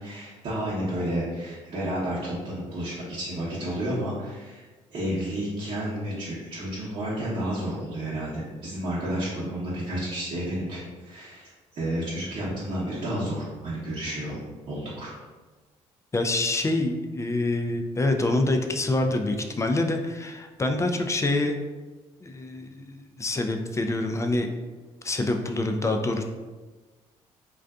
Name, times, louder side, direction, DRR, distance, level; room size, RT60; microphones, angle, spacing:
voice 1, 0.0-14.4 14.7-15.1, right 1 dB, 50° right, -9 dB, 0.9 m, -31 dB
voice 2, 16.1-21.6 22.2-24.5 25.0-26.2, left 2 dB, 20° left, 4 dB, 0.3 m, -26 dB
2.5 x 2.3 x 2.3 m, 1.3 s
supercardioid pair, 55°, 14 cm